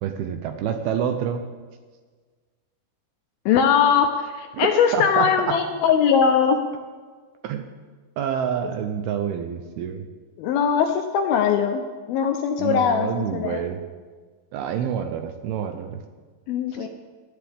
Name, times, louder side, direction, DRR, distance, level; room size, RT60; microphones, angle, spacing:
voice 1, 0.0-1.4 4.5-5.6 7.4-7.6 8.2-10.1 12.6-13.8 14.5-15.9 16.8-16.9, right 8 dB, 80° right, 7 dB, 2.4 m, -27 dB
voice 2, 3.5-6.6 10.4-11.8 12.1-13.6 16.5-16.9, left 7 dB, 80° left, 5 dB, 2.3 m, -20 dB
17.5 x 12.0 x 3.5 m, 1.5 s
omnidirectional pair, 4.9 m